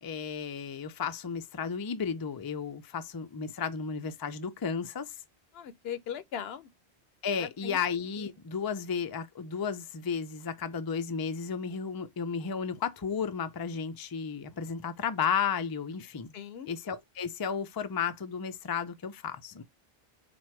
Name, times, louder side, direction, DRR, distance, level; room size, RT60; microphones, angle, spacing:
voice 1, 0.0-5.1 7.2-16.3 16.7-19.6, left 6 dB, 35° left, 0.3 m, -33 dB
voice 2, 5.5-6.7 7.4-7.8 16.3-16.7, left 8 dB, 80° left, 0.9 m, -39 dB
4.4 x 2.4 x 4.4 m
omnidirectional pair, 1.0 m